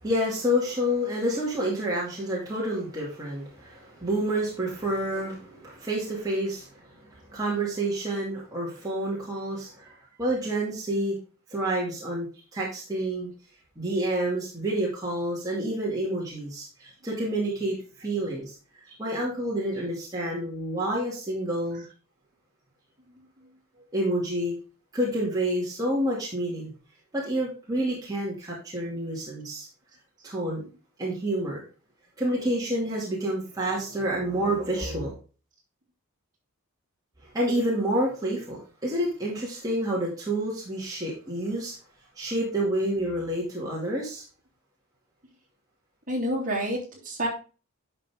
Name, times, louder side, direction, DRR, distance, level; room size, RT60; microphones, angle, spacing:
voice 1, 0.0-11.2 11.5-12.3 12.5-13.3 13.8-18.5 18.9-21.8 23.9-24.5 24.9-26.7 27.1-29.7 30.2-30.6 31.0-31.6 32.2-35.1 37.3-41.8 42.2-44.2, right 1 dB, 15° right, -5 dB, 2.5 m, -29 dB
voice 2, 23.1-23.5 46.1-47.3, equal, 40° right, -3 dB, 3.3 m, -30 dB
10.5 x 5.5 x 3.6 m, 0.35 s
head